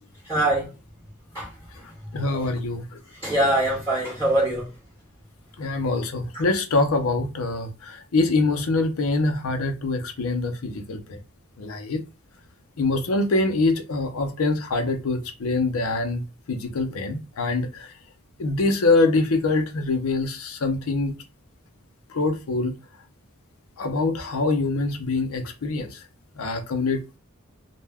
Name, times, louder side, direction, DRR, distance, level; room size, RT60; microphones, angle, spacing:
voice 1, 0.2-0.7 1.3-1.5 3.2-4.7, right 1 dB, 10° right, 0.8 m, -23 dB
voice 2, 2.1-3.0 5.6-11.2 11.6-12.0 12.8-17.9 18.4-21.1 22.1-22.8 23.8-26.0 26.4-27.0, left 3 dB, 80° left, 0.5 m, -24 dB
2.2 x 2.1 x 3.3 m
head